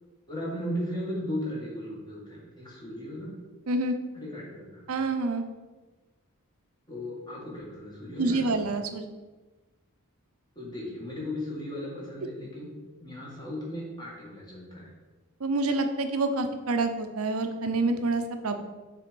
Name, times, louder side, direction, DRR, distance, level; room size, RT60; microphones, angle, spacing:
voice 1, 0.3-3.3 4.1-4.8 6.9-8.7 10.6-12.7 13.0-14.9, left 1 dB, 20° left, -5 dB, 1.9 m, -36 dB
voice 2, 4.9-5.4 8.2-9.1 15.4-18.6, right 2 dB, 80° right, 7 dB, 0.7 m, -27 dB
6.6 x 3.7 x 5.3 m, 1.2 s
head